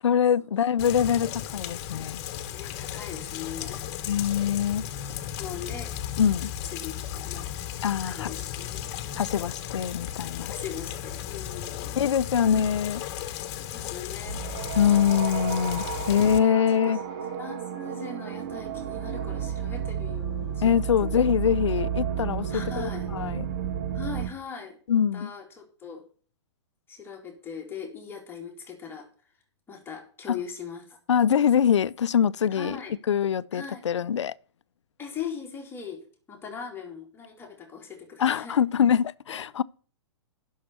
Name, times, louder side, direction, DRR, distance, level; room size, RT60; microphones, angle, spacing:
voice 1, 0.0-2.2 4.1-4.9 6.2-6.5 7.8-8.3 9.2-10.5 12.0-13.0 14.7-17.0 20.6-23.5 24.9-25.3 31.1-32.8 33.1-34.3 38.2-39.6, left 8 dB, 90° left, 0.5 m, -24 dB
Rain, 0.8-16.4, left 11 dB, 40° left, 1.4 m, -35 dB
voice 2, 2.5-3.8 5.0-6.0 6.7-7.5 8.0-8.9 10.5-12.0 12.4-12.6 13.2-14.4 16.5-17.0 17.4-20.7 21.0-21.2 22.5-23.1 23.9-24.8 25.1-26.0 26.9-29.1 29.7-31.0 32.5-32.9 33.5-33.8 35.0-38.6 39.3-39.4, left 7 dB, 15° left, 2.5 m, -40 dB
sound 1, 14.2-24.3, right 8 dB, 50° right, 1.6 m, -32 dB
10.5 x 6.5 x 6.7 m
hypercardioid pair, 135°, 15 cm